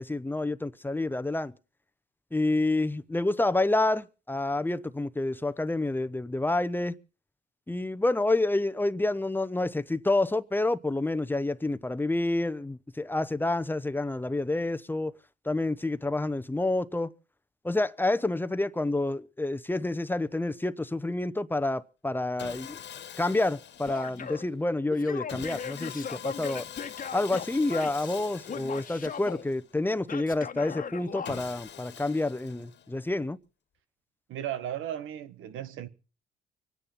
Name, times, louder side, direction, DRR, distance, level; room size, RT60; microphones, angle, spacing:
voice 1, 0.0-1.5 2.3-6.9 7.7-15.1 15.4-17.1 17.6-22.8 23.2-26.7 27.1-33.4, left 2 dB, 10° left, 0.8 m, -28 dB
Sawing, 22.4-24.4 25.3-29.8 31.2-33.1, left 9 dB, 65° left, 1.7 m, -44 dB
Male speech man speaking / Yell, 23.9-24.5 24.9-28.2 28.5-29.4 30.1-31.4, left 7 dB, 45° left, 1.3 m, -38 dB
voice 2, 34.3-35.9, right 11 dB, 85° right, 1.3 m, -35 dB
24.0 x 9.8 x 5.6 m
cardioid pair, 90°, 20 cm